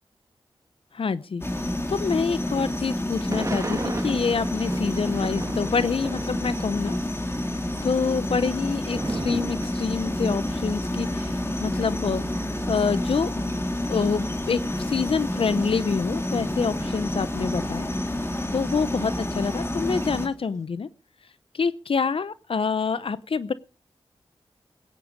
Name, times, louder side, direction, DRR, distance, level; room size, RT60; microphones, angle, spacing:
voice 1, 0.9-1.4 1.9-7.0 7.8-12.2 12.7-13.3 13.9-17.9 18.5-20.9 21.5-23.5, left 5 dB, 65° left, 15 dB, 0.7 m, -26 dB
sound 1, 1.4-20.3, left 1 dB, 25° left, 3.0 m, -29 dB
Thunder / Rain, 3.3-6.9 7.2-14.3 14.9-15.0 15.2-18.4 18.7-20.4, right 2 dB, 30° right, 1.7 m, -38 dB
16.5 x 10.0 x 5.1 m, 0.36 s
cardioid pair, 40°, 10 cm